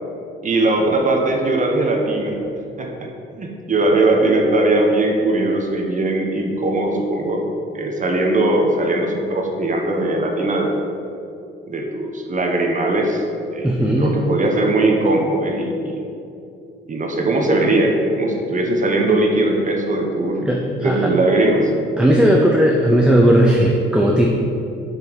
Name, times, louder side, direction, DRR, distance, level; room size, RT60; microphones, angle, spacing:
voice 1, 0.4-2.4 2.8-3.1 3.4-7.4 7.7-10.8 11.7-13.2 13.5-16.0 16.9-20.5 20.8-21.7, right 2 dB, 40° right, 1 dB, 1.1 m, -19 dB
voice 2, 13.6-14.2 20.5-21.1 22.0-24.3, right 1 dB, 5° right, -2 dB, 0.7 m, -16 dB
5.7 x 5.4 x 6.1 m, 2.6 s
cardioid pair, 90°, 20 cm